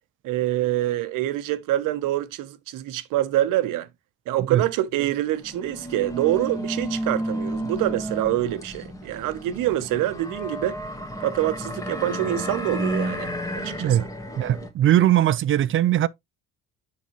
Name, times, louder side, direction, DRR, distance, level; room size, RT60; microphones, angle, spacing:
voice 1, 0.2-3.9 4.3-10.8 11.2-14.1, right 13 dB, 85° right, 0.9 m, -26 dB
sound 1, 5.3-14.7, right 1 dB, 10° left, 1.4 m, -32 dB
voice 2, 13.6-14.0 14.4-16.1, right 12 dB, 40° right, 0.4 m, -20 dB
7.0 x 5.7 x 3.0 m
cardioid pair, 140°, 31 cm